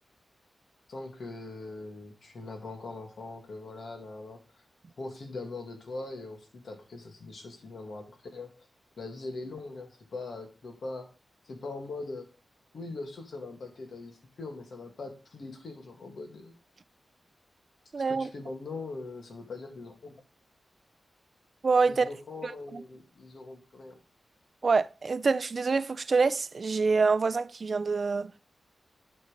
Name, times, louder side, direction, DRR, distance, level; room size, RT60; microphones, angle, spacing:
voice 1, 0.9-4.4 5.0-8.7 9.0-11.1 11.4-12.3 12.7-16.5 18.0-20.2 21.9-24.0, left 3 dB, 60° left, 2.0 m, -41 dB
voice 2, 17.9-18.3 21.6-22.1 22.4-22.8 24.6-28.3, right 4 dB, 40° right, 0.4 m, -26 dB
11.5 x 4.3 x 5.1 m
wide cardioid pair, 175°, 0 cm